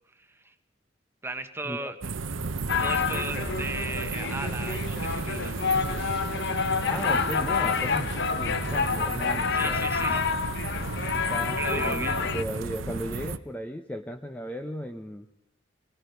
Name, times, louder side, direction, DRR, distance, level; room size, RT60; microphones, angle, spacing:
voice 1, 0.1-0.5 1.2-2.0 2.8-5.6 9.5-10.3 10.7-10.9 11.2-12.2, right 2 dB, 15° right, 8 dB, 1.3 m, -36 dB
sound 1, 2.0-13.4, right 3 dB, 80° right, 0.8 m, -34 dB
sound 2, 2.7-12.4, left 5 dB, 60° left, 0.9 m, -28 dB
voice 2, 6.9-10.2 11.3-15.3, equal, 10° left, 5 dB, 0.8 m, -36 dB
26.0 x 19.0 x 5.3 m, 0.75 s
head